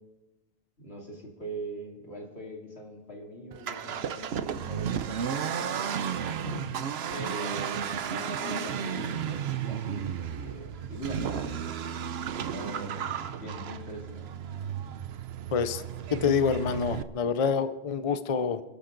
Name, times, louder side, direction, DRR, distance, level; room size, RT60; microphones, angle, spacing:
voice 1, 0.8-6.1 6.4-11.8 12.3-14.3, right 1 dB, 85° left, 0 dB, 3.2 m, -41 dB
Accelerating revving vroom, 3.5-17.0, right 8 dB, 80° right, 1.0 m, -33 dB
voice 2, 15.5-15.8 16.1-18.6, left 6 dB, 40° left, 12 dB, 0.6 m, -27 dB
26.5 x 12.5 x 3.9 m, 1.1 s
omnidirectional pair, 1.0 m